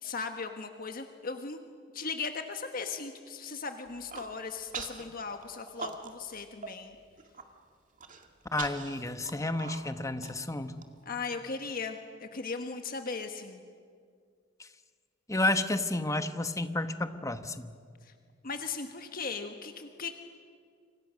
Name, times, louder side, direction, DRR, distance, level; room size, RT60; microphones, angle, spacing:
voice 1, 0.0-1.6 1.9-6.9 11.0-13.6 18.0-18.1 18.4-20.1, left 4 dB, 50° left, 6 dB, 1.4 m, -38 dB
Human voice, 3.9-4.3 4.7-5.0 5.4-6.3 6.6-6.7 7.1-7.4 8.0-10.8, right 5 dB, 45° right, 2.0 m, -42 dB
voice 2, 8.5-10.9 14.6-14.7 15.3-17.7, left 2 dB, 15° left, 9 dB, 1.1 m, -31 dB
29.5 x 26.0 x 6.4 m, 2.1 s
head